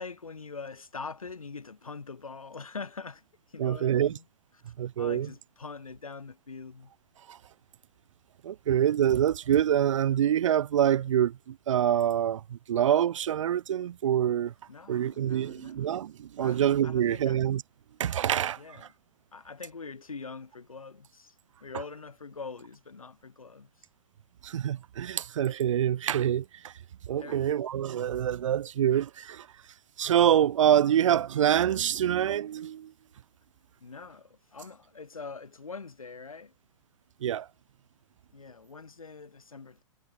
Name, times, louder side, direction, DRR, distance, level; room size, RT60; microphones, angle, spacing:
voice 1, 0.0-3.2 3.5-4.2 5.0-6.9 14.7-15.9 16.4-17.4 18.6-18.9 19.3-21.3 21.6-23.7 27.2-27.5 33.8-36.5 38.3-39.8, left 4 dB, 85° left, 6.2 m, -43 dB
voice 2, 3.6-4.2 4.8-5.3 7.3-7.4 8.4-14.5 14.9-17.6 18.0-18.6 24.4-26.7 27.1-29.5 30.0-32.9 37.2-37.5, right 10 dB, 65° right, 1.4 m, -26 dB
hypercardioid pair, 115°, 17 cm